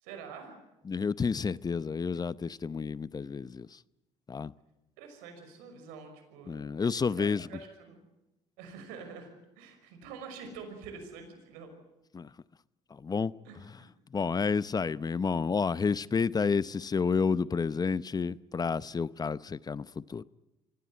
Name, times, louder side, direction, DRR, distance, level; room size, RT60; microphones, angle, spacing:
voice 1, 0.0-0.6 5.0-6.9 7.2-8.0 8.6-9.3 9.6-11.7 13.5-14.3, right 5 dB, 85° right, 5.7 m, -46 dB
voice 2, 0.8-3.8 4.3-4.5 6.5-7.5 12.1-12.3 12.9-13.3 14.1-20.2, left 5 dB, 30° left, 0.7 m, -30 dB
25.0 x 16.0 x 9.6 m
supercardioid pair, 70°, 14 cm